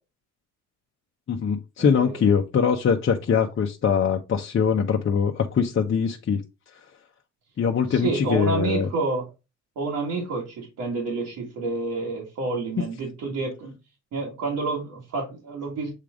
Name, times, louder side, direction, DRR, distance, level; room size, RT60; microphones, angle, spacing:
voice 1, 1.3-6.4 7.6-8.9, left 6 dB, 45° left, 0.8 m, -22 dB
voice 2, 1.8-2.2 7.9-9.3 9.8-13.8 14.1-15.9, right 3 dB, 80° right, 2.0 m, -29 dB
7.4 x 3.4 x 3.7 m
cardioid pair, 90°, 30 cm